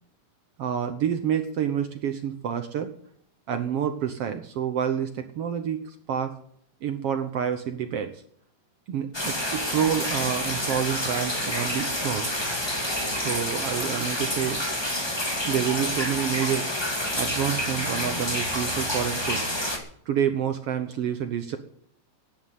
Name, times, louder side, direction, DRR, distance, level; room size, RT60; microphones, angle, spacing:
voice 1, 0.6-2.9 3.5-6.3 6.8-8.1 8.9-12.3 13.2-14.6 15.5-16.6 17.1-19.4 20.1-21.6, right 9 dB, 65° right, 7 dB, 1.6 m, -28 dB
sound 1, 9.1-19.8, left 1 dB, 10° left, 1.7 m, -28 dB
11.0 x 9.5 x 9.3 m, 0.67 s
omnidirectional pair, 3.6 m